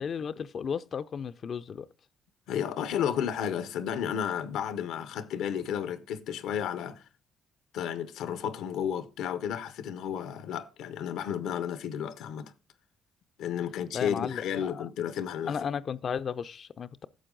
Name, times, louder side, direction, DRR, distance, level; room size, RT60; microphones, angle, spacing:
voice 1, 0.0-1.9 13.9-14.9 15.5-17.1, left 7 dB, 55° left, 0.4 m, -34 dB
voice 2, 2.5-7.0 7.7-12.5 13.4-15.6, left 9 dB, 90° left, 0.7 m, -32 dB
11.5 x 7.0 x 3.8 m
cardioid pair, 90°, 0 cm